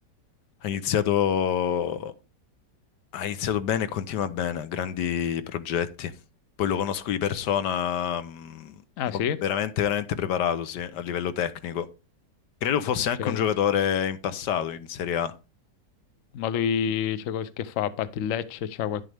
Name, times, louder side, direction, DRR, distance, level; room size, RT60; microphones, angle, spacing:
voice 1, 0.6-2.1 3.1-6.1 6.6-8.8 9.1-11.9 12.6-15.3, left 9 dB, 80° left, 1.4 m, -27 dB
voice 2, 9.0-9.4 13.2-13.4 16.3-19.0, left 8 dB, 60° left, 1.0 m, -28 dB
10.5 x 7.5 x 3.4 m
omnidirectional pair, 1.8 m